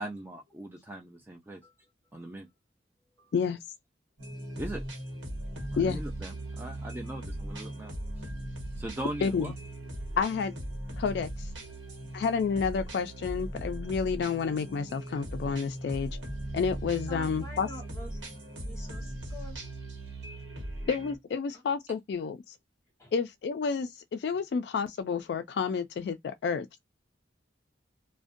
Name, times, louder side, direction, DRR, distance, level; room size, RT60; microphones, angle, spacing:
voice 1, 0.0-1.6 2.1-2.5 4.6-4.8 5.7-8.3 8.8-9.5, right 1 dB, 10° right, 0.4 m, -40 dB
sound 1, 4.2-21.2, right 1 dB, 85° right, 1.0 m, -39 dB
voice 2, 10.2-10.5 11.0-11.5 12.1-16.2 16.5-17.7 20.9-22.5 23.1-26.8, left 5 dB, 60° left, 0.3 m, -30 dB
voice 3, 17.1-18.3 18.6-19.7 20.5-20.7 21.5-21.6 23.0-23.1, left 2 dB, 15° left, 1.1 m, -48 dB
2.5 x 2.1 x 2.4 m
head